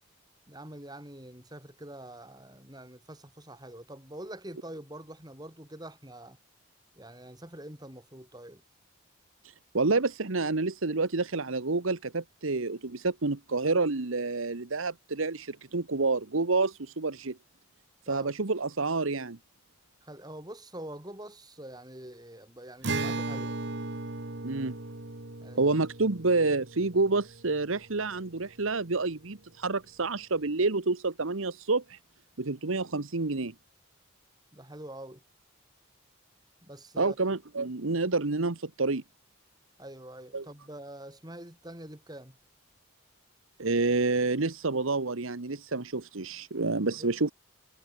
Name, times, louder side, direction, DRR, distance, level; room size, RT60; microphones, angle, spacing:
voice 1, 0.5-6.4 7.0-8.6 18.1-18.3 20.0-23.6 25.4-25.9 34.5-35.2 36.6-37.2 39.8-42.4 46.9-47.1, right 1 dB, 20° right, 5.1 m, -45 dB
voice 2, 9.7-17.4 18.1-19.4 24.4-24.8 25.6-32.0 32.4-33.5 37.0-39.0 40.3-40.4 43.6-47.3, right 3 dB, 75° right, 1.2 m, -28 dB
Acoustic guitar, 22.8-28.3, right 3 dB, 55° right, 1.6 m, -37 dB
head